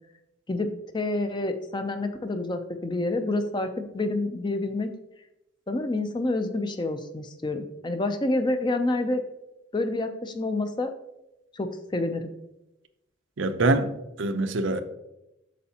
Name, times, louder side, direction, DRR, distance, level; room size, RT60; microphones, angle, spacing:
voice 1, 0.5-4.9 5.7-9.2 9.7-10.9 11.5-12.3, left 2 dB, 20° left, 8 dB, 0.5 m, -28 dB
voice 2, 13.4-14.8, right 2 dB, 70° right, 9 dB, 0.6 m, -25 dB
8.3 x 6.4 x 2.8 m, 0.92 s
head